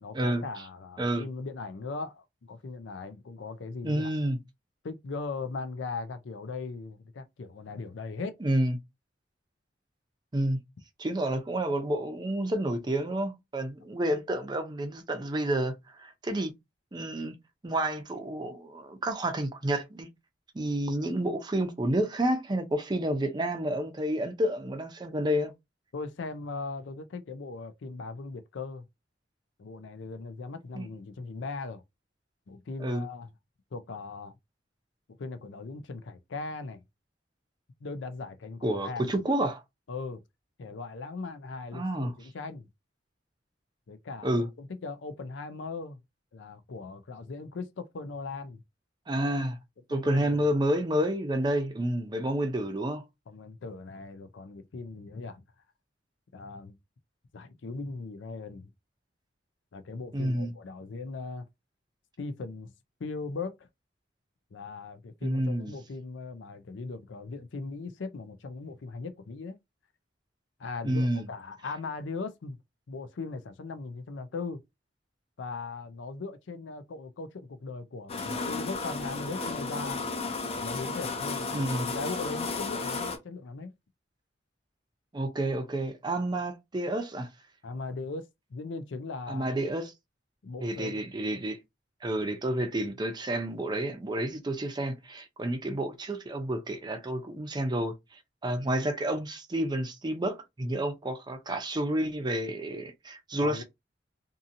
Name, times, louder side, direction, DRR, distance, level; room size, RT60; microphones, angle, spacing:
voice 1, 0.0-4.1 4.8-8.4 25.9-28.9 29.6-31.8 32.5-33.3 33.7-34.3 35.2-36.8 37.8-39.1 39.9-40.2 40.6-42.7 43.9-46.0 46.3-48.6 50.1-50.4 53.3-55.4 56.3-56.8 57.3-58.7 59.7-61.5 62.2-62.7 63.0-63.7 64.5-69.6 70.6-72.6 72.9-74.6 75.4-80.0 80.6-81.6 81.9-83.7 87.6-89.5 90.4-91.0 103.4-103.6, left 3 dB, 75° left, 0.5 m, -39 dB
voice 2, 3.8-4.4 8.4-8.8 10.3-10.6 11.0-16.5 16.9-17.3 17.6-20.1 20.5-25.5 30.7-30.9 32.8-33.0 38.6-39.6 41.7-42.1 44.2-44.5 49.1-49.6 49.9-53.0 60.1-60.5 65.2-65.7 70.8-71.2 81.5-81.9 85.1-87.3 89.3-89.9 90.6-91.6 92.0-98.0 98.4-103.6, right 1 dB, 25° right, 0.5 m, -30 dB
sound 1, 78.1-83.2, left 3 dB, 35° left, 0.6 m, -33 dB
2.7 x 2.6 x 2.5 m
head